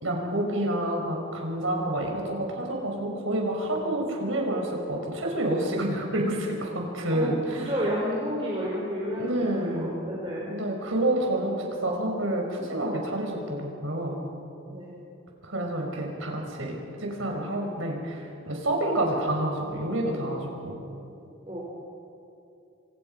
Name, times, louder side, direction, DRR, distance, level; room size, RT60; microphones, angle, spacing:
voice 1, 0.0-7.6 9.2-9.9 10.5-14.2 15.4-20.7, right 1 dB, 85° right, 1 dB, 5.5 m, -28 dB
voice 2, 7.1-10.5 14.7-14.9 21.4-21.6, equal, 25° right, -5 dB, 4.5 m, -31 dB
28.5 x 26.0 x 5.6 m, 2.7 s
head